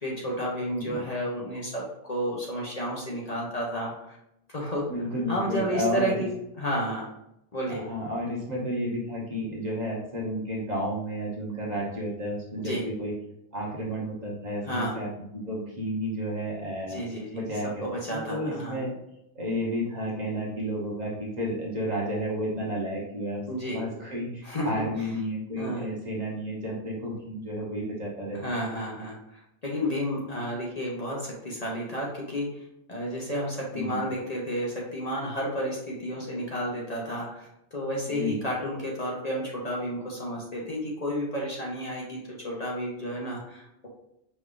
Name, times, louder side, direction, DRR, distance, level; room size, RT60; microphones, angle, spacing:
voice 1, 0.0-4.2 4.5-4.8 5.3-6.3 6.6-7.1 7.5-7.8 12.6-12.8 14.7-15.0 16.9-17.4 17.8-18.8 23.5-23.8 24.4-24.7 25.6-25.9 28.3-32.5 32.9-42.2 42.4-43.9, equal, 40° left, -3 dB, 0.8 m, -31 dB
voice 2, 4.9-6.3 7.7-13.1 13.5-17.0 17.3-18.9 19.3-23.4 23.7-28.4 33.7-34.0 38.1-38.4, equal, 40° right, -4 dB, 1.1 m, -32 dB
5.2 x 3.3 x 2.5 m, 0.84 s
omnidirectional pair, 1.1 m